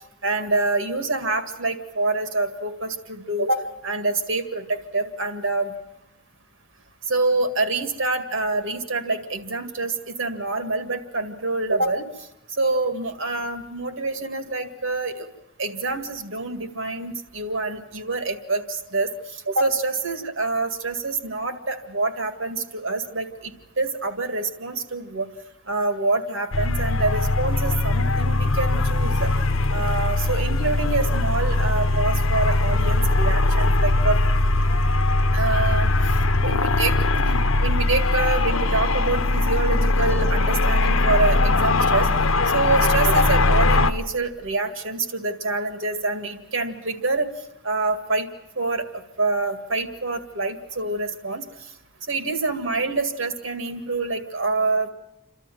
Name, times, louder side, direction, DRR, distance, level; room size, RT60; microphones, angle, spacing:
voice 1, 0.2-5.7 7.1-12.1 12.5-15.3 15.6-25.3 25.7-29.3 29.7-34.2 35.3-35.9 36.4-42.1 42.5-47.3 47.6-48.3 48.6-51.4 52.1-54.9, right 3 dB, 65° right, 7 dB, 2.0 m, -26 dB
sound 1, 26.5-43.9, left 2 dB, 75° left, 1.0 m, -20 dB
29.0 x 13.0 x 9.2 m, 0.91 s
head